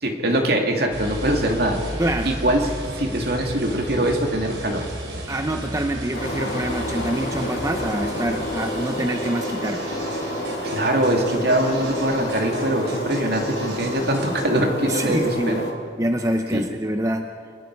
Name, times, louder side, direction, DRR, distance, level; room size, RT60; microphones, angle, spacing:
voice 1, 0.0-1.8 2.3-2.7 3.0-4.9 10.6-15.7 16.5-16.6, right 1 dB, 55° right, 2 dB, 2.6 m, -22 dB
sound 1, 0.9-14.4, right 1 dB, 75° right, 3.9 m, -34 dB
voice 2, 2.0-2.3 5.3-9.9 14.9-15.6 16.0-17.3, right 1 dB, 15° right, 5 dB, 0.8 m, -25 dB
sound 2, 6.1-15.7, left 1 dB, 60° left, 3.3 m, -29 dB
27.5 x 20.5 x 4.8 m, 2.2 s
head